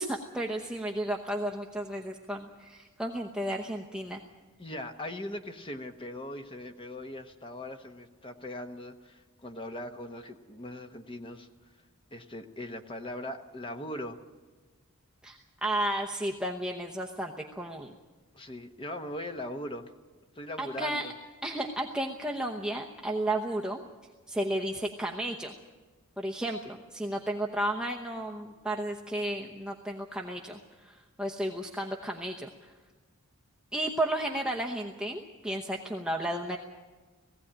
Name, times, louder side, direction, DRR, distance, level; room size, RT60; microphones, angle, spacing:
voice 1, 0.0-4.2 15.2-18.0 20.6-21.1 21.4-23.8 24.3-25.5 26.2-32.7 33.7-36.6, right 1 dB, 5° right, 0 dB, 0.9 m, -33 dB
voice 2, 4.6-11.5 12.1-14.2 18.3-19.9 20.3-21.1, left 1 dB, 25° left, 6 dB, 1.1 m, -40 dB
18.5 x 16.0 x 8.8 m, 1.3 s
head